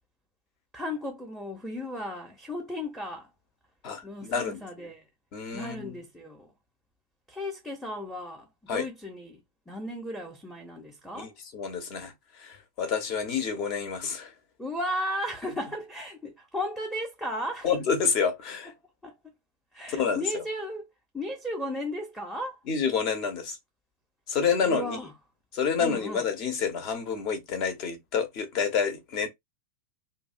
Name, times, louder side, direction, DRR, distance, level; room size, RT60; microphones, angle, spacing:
voice 1, 0.7-3.3 4.0-5.1 5.5-6.5 7.3-11.3 14.6-17.7 19.0-19.1 19.7-20.9 21.1-22.6 24.6-25.1 25.8-26.3, left 1 dB, ahead, 0.7 m, -35 dB
voice 2, 3.8-4.9 5.3-6.0 8.7-8.9 11.1-14.3 17.6-18.7 19.9-20.4 22.7-23.6 24.3-25.0 25.5-29.3, left 6 dB, 40° left, 0.8 m, -29 dB
2.6 x 2.1 x 2.5 m
figure-of-eight pair, 90°, 0 cm